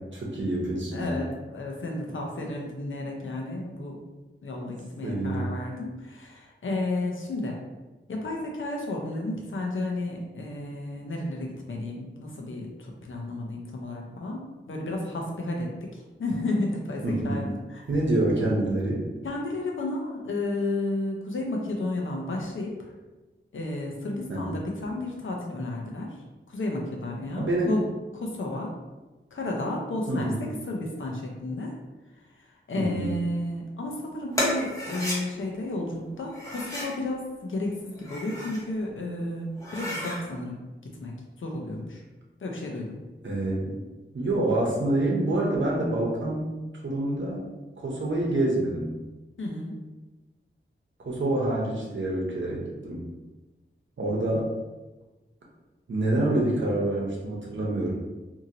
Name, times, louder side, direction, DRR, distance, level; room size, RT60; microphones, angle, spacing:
voice 1, 0.0-1.2 5.0-5.5 17.0-17.5 17.9-19.1 24.3-24.6 27.4-27.8 30.1-30.4 32.8-33.2 43.2-43.8 44.1-46.5 46.8-47.4 47.8-49.0 51.1-53.1 54.0-54.5 55.9-57.9, right 1 dB, 70° right, -3 dB, 0.8 m, -27 dB
voice 2, 0.9-4.0 4.4-7.6 8.1-17.9 19.2-22.9 23.5-26.2 26.5-27.8 28.1-28.7 29.3-31.7 32.7-42.0 42.4-43.0 49.4-49.7, left 2 dB, 80° left, -1 dB, 0.6 m, -32 dB
sound 1, 34.3-35.2 36.3-37.0 37.9-38.6 39.1-39.2 39.5-40.2, left 1 dB, 15° left, 0.8 m, -32 dB
2.7 x 2.6 x 2.8 m, 1.1 s
wide cardioid pair, 85°, 20 cm